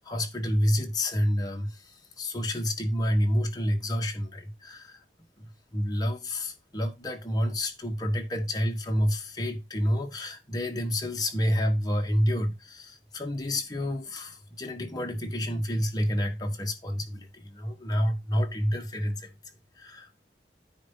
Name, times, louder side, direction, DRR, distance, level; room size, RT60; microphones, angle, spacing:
voice 1, 0.0-5.0 5.4-19.3 19.8-20.3, equal, 20° left, 1.4 m, -29 dB
9.5 x 3.4 x 5.5 m
head